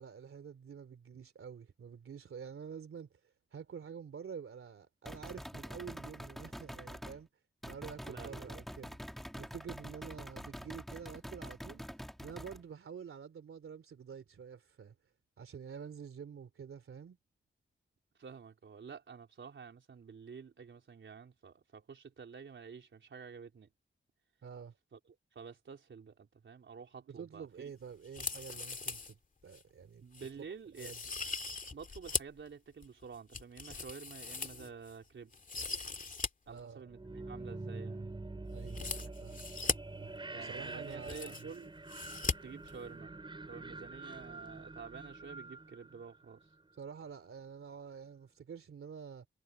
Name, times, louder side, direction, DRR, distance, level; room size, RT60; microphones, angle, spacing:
voice 1, 0.0-3.1 3.5-7.3 7.6-9.0 9.3-11.8 12.2-14.9 15.4-17.2 24.4-24.8 27.1-29.2 29.4-30.0 30.4-30.5 30.8-31.0 36.5-36.8 38.5-39.4 39.9-41.5 46.8-49.3, right 7 dB, 90° right, 3.2 m, -48 dB
sound 1, 5.1-7.2 7.6-12.6, equal, ahead, 3.0 m, -46 dB
voice 2, 8.0-8.6 18.2-23.7 24.9-25.0 25.3-27.7 30.0-30.9 31.7-35.3 36.5-38.1 40.3-41.7 42.4-43.1 43.5-46.4, right 6 dB, 65° right, 4.2 m, -50 dB
sound 2, 28.0-29.1 29.5-29.6 30.1-30.3 30.8-32.4 32.8-34.9 35.3-36.3 36.6-36.7 38.7-39.8 40.6-40.7 40.8-41.6 41.9-42.3 42.6-42.7, left 4 dB, 40° left, 2.3 m, -39 dB
sound 3, 36.8-46.7, right 2 dB, 25° right, 4.8 m, -46 dB
wide cardioid pair, 130°, 21 cm